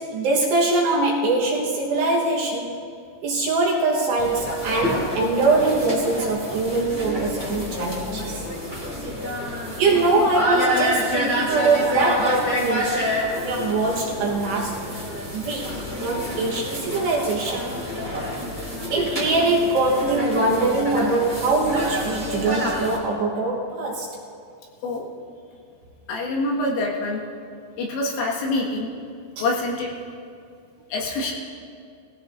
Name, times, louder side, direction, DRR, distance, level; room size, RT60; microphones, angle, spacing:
voice 1, 0.0-2.8 3.2-8.5 9.8-13.2 13.4-14.8 15.3-17.6 18.9-24.1 29.4-29.5, right 2 dB, 70° right, -3 dB, 3.0 m, -23 dB
sound 1, 4.2-23.0, equal, 5° right, 1.5 m, -28 dB
voice 2, 9.9-10.3 24.8-25.1 26.1-27.2 27.8-29.0 29.4-29.9 30.9-31.3, left 2 dB, 80° left, -2 dB, 4.3 m, -26 dB
20.0 x 15.5 x 2.6 m, 2.3 s
omnidirectional pair, 5.8 m